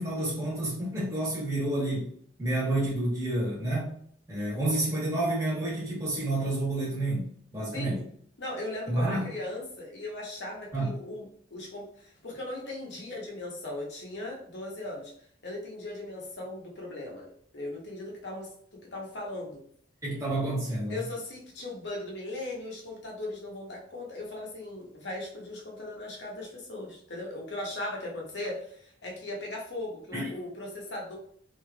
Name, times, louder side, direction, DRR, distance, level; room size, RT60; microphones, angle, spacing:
voice 1, 0.0-2.1 2.4-3.9 4.3-8.0 8.9-9.2 10.7-11.0 20.0-21.0 30.1-30.3, right 1 dB, 15° right, -7 dB, 1.1 m, -29 dB
voice 2, 8.4-15.1 15.4-17.2 17.5-19.6 20.9-31.2, left 1 dB, 65° left, -1 dB, 0.9 m, -38 dB
3.2 x 2.7 x 2.3 m, 0.62 s
head